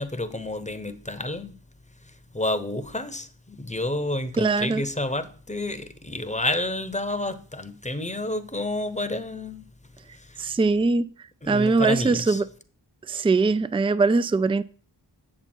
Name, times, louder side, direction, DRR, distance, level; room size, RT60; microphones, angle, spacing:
voice 1, 0.0-1.5 2.0-9.6 10.1-10.6 11.4-12.4, left 1 dB, 15° left, 0.9 m, -30 dB
voice 2, 4.4-4.8 10.4-11.1 11.5-12.4 13.1-14.6, right 3 dB, 15° right, 0.3 m, -21 dB
8.7 x 6.8 x 4.5 m
wide cardioid pair, 40°, 43 cm